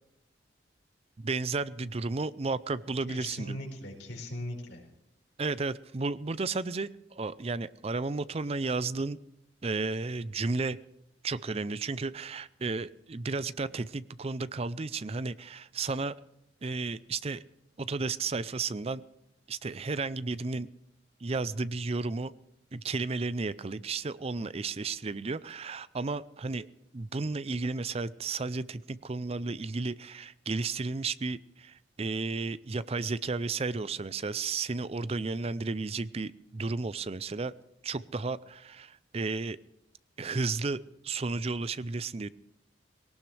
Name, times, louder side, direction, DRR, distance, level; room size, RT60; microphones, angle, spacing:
voice 1, 1.2-3.6 5.4-9.2 9.6-10.8 11.2-16.1 16.6-17.4 17.8-19.0 19.5-20.7 21.2-22.3 22.7-26.7 26.9-37.5 37.8-39.6 40.2-42.3, right 3 dB, 35° right, 16 dB, 0.5 m, -33 dB
voice 2, 3.1-4.9, left 1 dB, 85° left, 0 dB, 4.8 m, -39 dB
19.5 x 18.5 x 3.3 m, 0.85 s
head